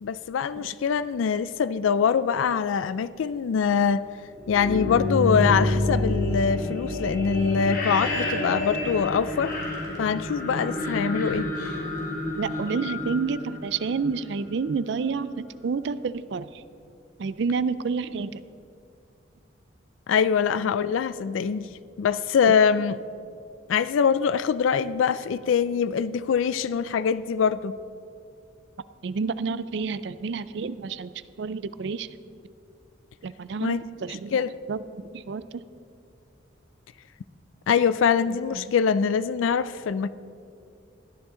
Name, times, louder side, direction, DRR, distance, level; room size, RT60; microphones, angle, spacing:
voice 1, 0.0-4.0 4.5-9.5 10.0-11.5 20.1-21.7 22.0-23.0 23.7-27.7 33.6-33.8 34.3-34.5 37.7-40.1, left 6 dB, 90° left, 15 dB, 0.4 m, -23 dB
sound 1, 4.3-14.2, left 1 dB, 45° left, 2.8 m, -28 dB
voice 2, 12.4-16.6 17.2-18.4 29.0-31.1 31.4-32.1 33.2-33.8 34.0-34.4 34.7-35.5, right 5 dB, 60° right, 15 dB, 0.4 m, -29 dB
17.5 x 9.8 x 3.8 m, 2.5 s
head